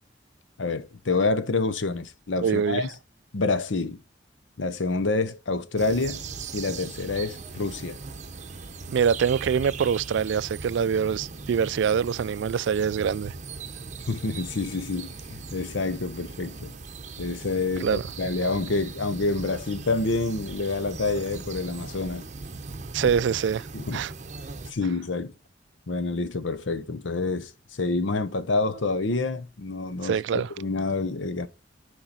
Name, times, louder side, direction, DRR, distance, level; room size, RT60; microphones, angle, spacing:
voice 1, 0.6-2.9 3.3-4.0 4.6-6.2 6.5-8.0 14.1-16.7 17.2-22.3 23.0-23.1 23.7-24.0 24.7-25.3 25.9-31.5, left 3 dB, 90° left, 0.8 m, -28 dB
voice 2, 2.4-2.8 8.9-13.3 17.8-18.0 22.9-23.7 23.9-24.1 30.0-30.5, right 7 dB, 70° right, 0.3 m, -24 dB
sound 1, 5.8-24.7, right 4 dB, 40° right, 0.8 m, -39 dB
8.8 x 4.8 x 4.1 m
head